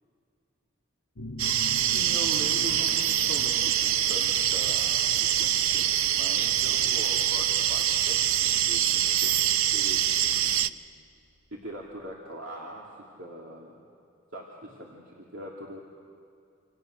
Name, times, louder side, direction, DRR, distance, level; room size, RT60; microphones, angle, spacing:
sound 1, 1.2-10.6, left 1 dB, 90° left, 1.2 m, -45 dB
sound 2, 1.4-10.7, right 11 dB, 90° right, 0.6 m, -25 dB
voice 1, 1.9-10.7 11.5-13.8 14.3-15.8, equal, 75° right, -2 dB, 2.7 m, -42 dB
28.0 x 27.0 x 6.6 m, 2.4 s
head